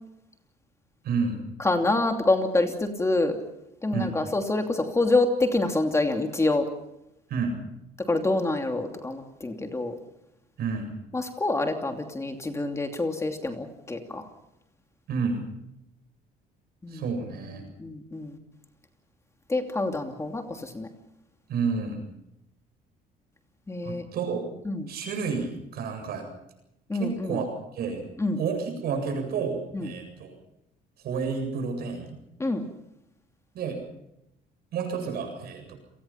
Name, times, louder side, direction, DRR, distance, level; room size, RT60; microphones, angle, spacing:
voice 1, 1.0-1.5 3.9-4.2 7.3-7.7 10.6-11.0 15.1-15.5 16.9-17.6 21.5-22.1 23.8-24.4 24.9-26.3 26.9-27.5 27.7-28.1 28.4-30.3 31.0-32.2 33.5-33.9 34.7-35.8, right 5 dB, 65° right, 5 dB, 8.0 m, -30 dB
voice 2, 1.6-3.4 3.8-6.7 8.1-9.9 11.1-14.3 16.8-17.0 17.8-18.4 19.5-20.9 23.7-24.0 24.6-24.9 26.9-27.4 28.2-28.4 29.7-29.9 32.4-32.7, left 2 dB, 15° left, 5 dB, 2.8 m, -26 dB
30.0 x 19.5 x 5.8 m, 0.84 s
cardioid pair, 110°, 17 cm